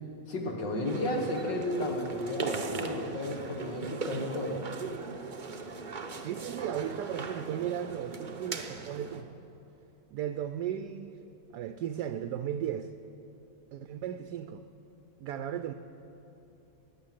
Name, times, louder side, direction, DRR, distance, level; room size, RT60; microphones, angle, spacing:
voice 1, 0.3-4.6, left 1 dB, 75° left, 1 dB, 2.2 m, -33 dB
sound 1, 0.8-9.2, right 4 dB, 45° right, 0.6 m, -38 dB
voice 2, 6.2-9.3 10.1-11.2 11.5-12.9 13.7-14.6 15.2-15.7, right 10 dB, 75° right, 9 dB, 1.1 m, -35 dB
16.5 x 10.0 x 7.5 m, 2.9 s
omnidirectional pair, 2.0 m